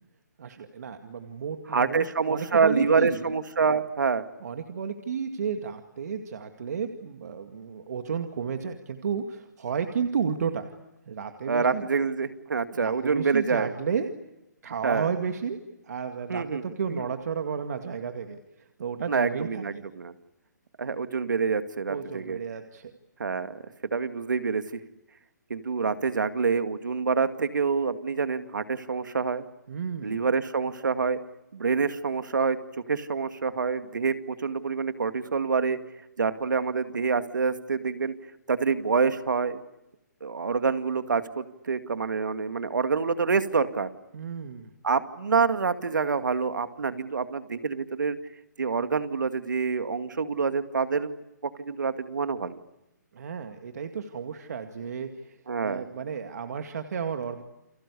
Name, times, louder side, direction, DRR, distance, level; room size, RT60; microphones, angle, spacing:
voice 1, 0.4-3.3 4.4-10.7 11.1-11.9 12.8-14.1 14.6-15.6 15.8-19.8 21.9-22.9 29.7-30.2 44.1-44.7 53.1-57.4, right 6 dB, 60° right, 6 dB, 2.2 m, -32 dB
voice 2, 1.7-4.2 11.5-13.7 14.8-15.1 16.3-16.6 16.9-17.0 19.1-20.1 20.8-22.4 23.2-23.6 23.9-24.8 25.5-29.4 30.0-31.2 31.5-32.6 32.9-35.8 36.2-38.1 38.5-39.6 40.2-43.9 44.8-48.2 48.6-51.2 51.6-52.6 55.5-55.8, right 5 dB, 80° right, 9 dB, 2.2 m, -26 dB
30.0 x 23.5 x 8.5 m, 0.90 s
hypercardioid pair, 155°, 10 cm